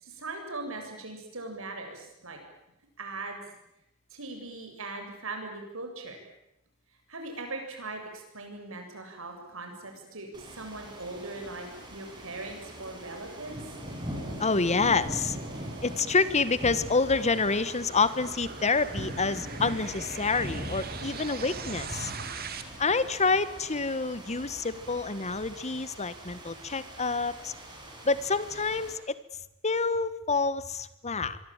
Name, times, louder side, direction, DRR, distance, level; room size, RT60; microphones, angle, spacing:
voice 1, 0.0-2.4 3.0-3.4 4.1-6.2 7.1-13.6, right 2 dB, 70° right, 4 dB, 7.7 m, -40 dB
sound 1, 9.4-22.6, right 6 dB, 45° right, 2.5 m, -44 dB
sound 2, 10.3-28.9, equal, 20° right, 7.8 m, -41 dB
voice 2, 14.4-15.4 15.8-22.1 22.8-27.5 28.0-29.2 29.6-31.4, left 4 dB, 30° left, 15 dB, 1.4 m, -27 dB
26.0 x 23.0 x 9.0 m, 0.82 s
head